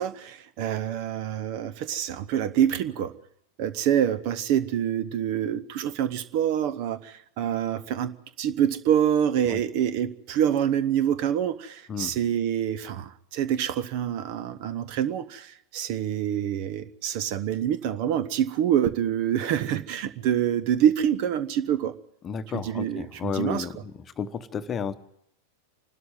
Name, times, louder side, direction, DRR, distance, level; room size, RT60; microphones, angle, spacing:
voice 1, 0.0-3.1 3.6-21.9 22.5-23.7, right 10 dB, 45° right, 14 dB, 1.0 m, -26 dB
voice 2, 22.2-23.9 24.2-24.9, left 7 dB, 25° left, 10 dB, 1.0 m, -32 dB
27.0 x 12.5 x 9.2 m, 0.77 s
figure-of-eight pair, 90°, 0 cm